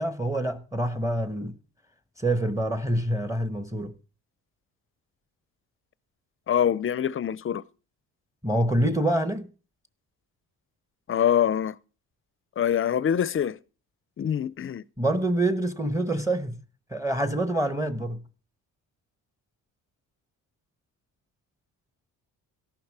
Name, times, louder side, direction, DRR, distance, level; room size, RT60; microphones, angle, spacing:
voice 1, 0.0-1.5 2.2-3.9 8.4-9.5 15.0-16.5 16.9-18.2, right 1 dB, 10° right, 1.1 m, -26 dB
voice 2, 6.5-7.6 11.1-11.8 12.6-13.6 14.2-14.8, left 9 dB, 35° left, 0.6 m, -24 dB
14.0 x 11.5 x 4.8 m
cardioid pair, 115°, 36 cm